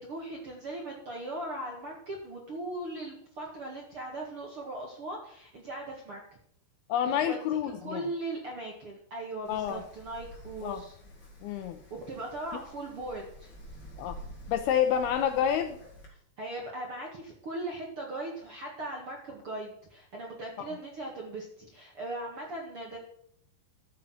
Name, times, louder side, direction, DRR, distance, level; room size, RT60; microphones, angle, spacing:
voice 1, 0.0-6.2 7.0-7.4 7.8-10.9 11.9-13.5 16.4-23.0, right 2 dB, 50° right, -1 dB, 1.8 m, -39 dB
voice 2, 6.9-8.0 9.5-9.8 10.6-10.8 11.4-11.8 14.0-14.2 14.5-15.8 20.6-20.7, left 9 dB, 80° left, 8 dB, 2.4 m, -28 dB
Wind, 9.4-16.1, equal, 30° left, 3.7 m, -49 dB
12.5 x 8.4 x 5.8 m, 0.66 s
omnidirectional pair, 5.1 m